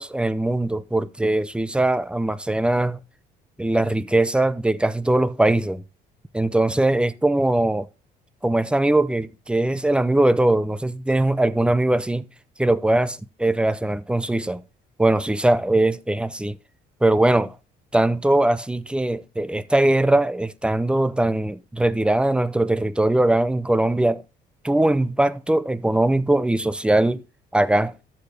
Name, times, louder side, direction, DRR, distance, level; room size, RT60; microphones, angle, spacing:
voice 1, 0.0-3.0 3.6-5.8 6.3-7.9 8.4-12.3 12.6-14.6 15.0-16.6 17.0-17.6 17.9-24.2 24.6-27.2 27.5-27.9, right 1 dB, 5° right, 0.5 m, -21 dB
13.0 x 4.9 x 3.4 m
cardioid pair, 110°, 17 cm